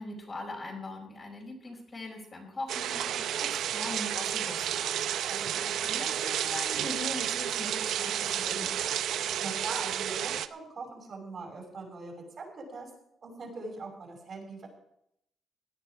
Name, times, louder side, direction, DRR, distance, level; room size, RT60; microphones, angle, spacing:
voice 1, 0.0-8.8, left 2 dB, 35° left, -1 dB, 4.8 m, -41 dB
sound 1, 2.7-10.5, right 10 dB, 80° right, 0.6 m, -31 dB
voice 2, 9.2-12.9 13.2-14.7, right 3 dB, 50° right, 1 dB, 5.7 m, -41 dB
17.0 x 10.5 x 4.8 m, 0.76 s
cardioid pair, 95°, 0 cm